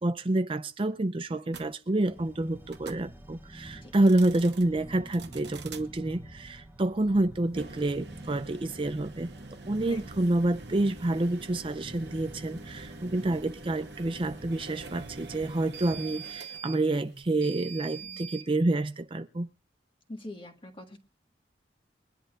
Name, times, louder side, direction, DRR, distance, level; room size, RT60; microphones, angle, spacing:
voice 1, 0.0-9.3 9.7-19.5, right 2 dB, 30° right, 0.5 m, -28 dB
sound 1, 1.5-1.7 2.7-3.0 3.9-4.6 5.1-5.8 7.4-18.5, right 4 dB, 70° right, 1.0 m, -45 dB
sound 2, 2.0-15.7, right 1 dB, 15° right, 0.9 m, -48 dB
voice 2, 20.1-21.0, left 1 dB, 30° left, 1.7 m, -44 dB
22.5 x 10.5 x 2.5 m
head